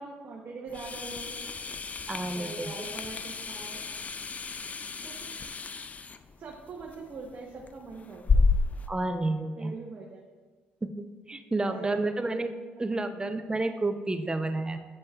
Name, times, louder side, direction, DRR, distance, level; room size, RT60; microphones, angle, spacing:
voice 1, 0.0-1.4 2.3-3.8 5.0-5.3 6.4-8.5 9.6-10.2 11.6-12.4 12.8-12.9, right 3 dB, 45° right, -1 dB, 0.8 m, -42 dB
sound 1, 0.7-8.9, left 4 dB, 30° left, 0.3 m, -32 dB
voice 2, 2.1-2.7 8.9-9.7 10.8-12.5 12.8-14.8, right 2 dB, 15° right, 8 dB, 0.5 m, -30 dB
8.5 x 5.3 x 2.3 m, 1.5 s
supercardioid pair, 65°, 5 cm